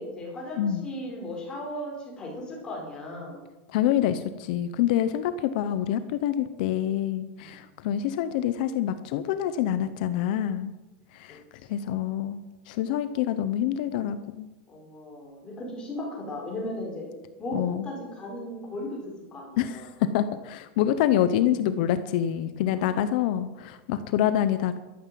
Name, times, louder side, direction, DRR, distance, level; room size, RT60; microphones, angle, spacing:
voice 1, 0.0-3.4 7.4-7.6 11.3-11.4 14.7-17.1 17.4-19.0 19.3-19.9 22.7-23.1, left 1 dB, 15° left, -1 dB, 4.7 m, -36 dB
voice 2, 3.7-10.7 11.1-11.4 11.7-14.5 17.5-17.9 19.6-24.8, left 10 dB, 50° left, 11 dB, 0.9 m, -26 dB
13.0 x 12.0 x 7.6 m, 1.1 s
supercardioid pair, 175°, 6 cm